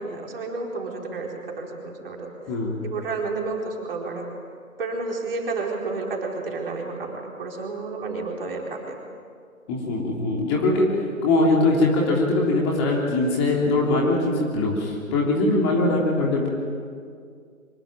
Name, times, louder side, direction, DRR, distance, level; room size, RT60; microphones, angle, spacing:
voice 1, 0.0-2.3 2.8-4.3 4.8-9.0, right 3 dB, 40° right, 0 dB, 4.5 m, -31 dB
voice 2, 2.5-2.8 9.7-16.5, left 2 dB, 20° left, -2 dB, 3.4 m, -22 dB
25.0 x 21.5 x 9.0 m, 2.2 s
figure-of-eight pair, 150°, 42 cm